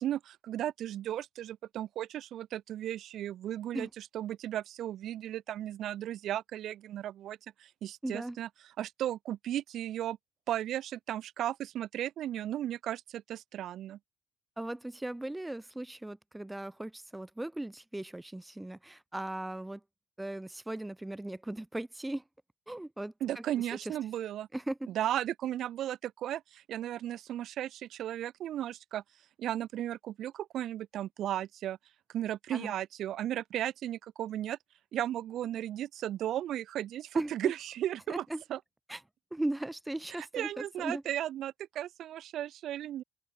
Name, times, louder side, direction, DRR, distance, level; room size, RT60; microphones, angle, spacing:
voice 1, 0.0-8.5 8.8-10.2 10.5-14.0 23.2-24.5 24.9-29.0 29.4-31.8 32.1-34.6 34.9-38.2 38.5-38.6 40.2-43.0, right 12 dB, 65° right, 4.3 m, -35 dB
voice 2, 8.0-8.4 14.6-19.8 20.2-22.2 22.7-23.4 23.7-23.9 24.5-24.8 32.5-32.7 37.1-37.5 38.1-38.4 38.9-39.0 39.3-41.0, right 1 dB, 5° right, 2.4 m, -38 dB
open air
cardioid pair, 155°, 0 cm